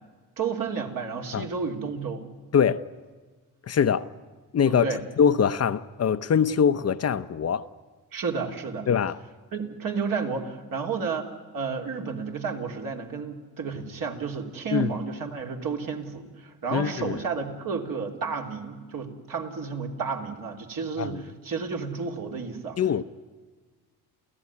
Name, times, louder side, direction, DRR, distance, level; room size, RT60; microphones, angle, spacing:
voice 1, 0.4-2.2 4.6-5.0 8.1-8.9 9.5-22.8, right 5 dB, 55° right, 2 dB, 3.4 m, -31 dB
voice 2, 3.7-4.1 4.5-4.9 5.2-7.7 8.9-9.2 14.7-14.9 16.7-17.2 21.0-21.2 22.8-23.0, left 7 dB, 40° left, 12 dB, 0.8 m, -23 dB
28.5 x 15.5 x 9.7 m, 1.4 s
cardioid pair, 115°, 39 cm